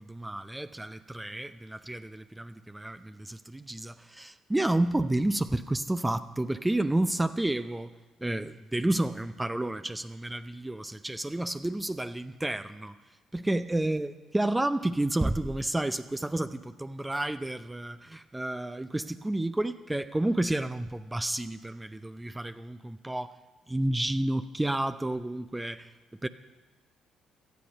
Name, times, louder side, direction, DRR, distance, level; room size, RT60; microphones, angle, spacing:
voice 1, 0.0-7.9 8.2-12.9 13.3-23.3 23.7-25.9 26.2-26.3, right 1 dB, 15° right, 10 dB, 0.6 m, -30 dB
17.5 x 13.0 x 5.3 m, 1.2 s
hypercardioid pair, 45°, 0 cm